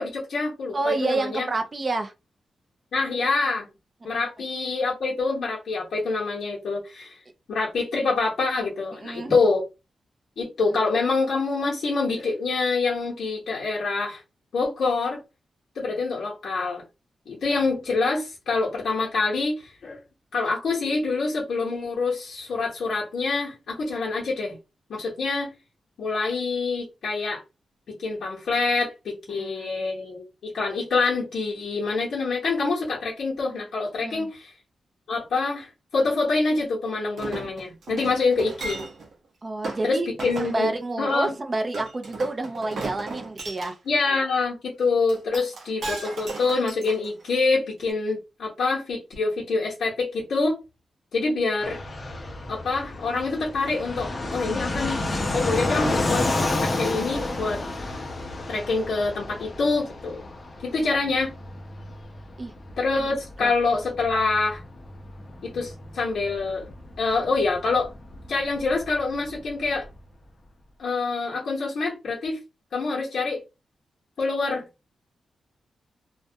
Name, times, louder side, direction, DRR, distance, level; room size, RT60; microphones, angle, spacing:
voice 1, 0.0-1.5 2.9-3.7 4.0-7.2 7.5-9.6 10.4-14.2 14.5-15.2 15.8-16.8 17.3-20.0 20.3-24.6 24.9-25.5 26.0-27.4 27.9-34.5 35.1-38.8 39.8-40.7 41.0-41.3 43.9-50.6 51.1-51.8 52.5-55.0 55.3-56.3 56.6-57.6 58.5-60.2 60.6-61.3 62.8-64.6 65.4-66.7 67.0-67.9 68.3-69.9 70.8-72.4 72.7-73.4 74.2-74.7, left 3 dB, 70° left, 0.8 m, -26 dB
voice 2, 0.7-2.1 4.1-4.3 9.0-9.4 29.3-29.7 34.0-34.3 39.4-40.1 40.4-43.7 62.4-62.5 63.0-63.1 63.4-63.5, right 2 dB, 30° right, 0.4 m, -29 dB
Chink clink, 37.2-39.1 39.6-39.8 40.2-40.6 41.7-43.7 45.1-47.4 47.9-48.0, right 3 dB, 60° right, 0.7 m, -35 dB
Fixed-wing aircraft airplane, 51.6-70.0, left 2 dB, 30° left, 0.5 m, -31 dB
2.2 x 2.1 x 2.6 m
wide cardioid pair, 145°, 0 cm